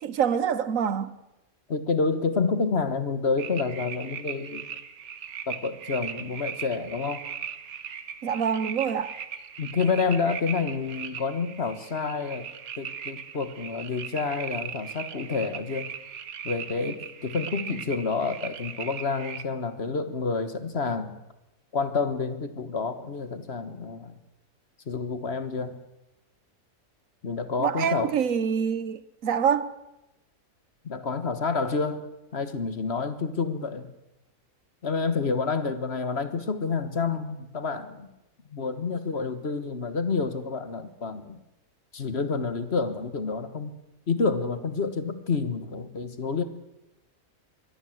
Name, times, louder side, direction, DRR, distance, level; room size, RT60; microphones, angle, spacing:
voice 1, 0.0-1.1 8.2-9.2 27.6-29.7, right 7 dB, 70° right, 1.3 m, -26 dB
voice 2, 1.7-4.7 5.5-7.2 9.6-12.5 12.8-15.9 16.4-21.2 21.7-24.1 24.9-25.8 27.2-28.1 30.8-33.9 34.8-38.1 38.5-41.4 41.9-43.7 44.1-46.4, left 4 dB, 50° left, 1.6 m, -29 dB
sound 1, 3.4-19.4, right 8 dB, 90° right, 1.6 m, -39 dB
23.5 x 16.5 x 7.9 m
omnidirectional pair, 1.5 m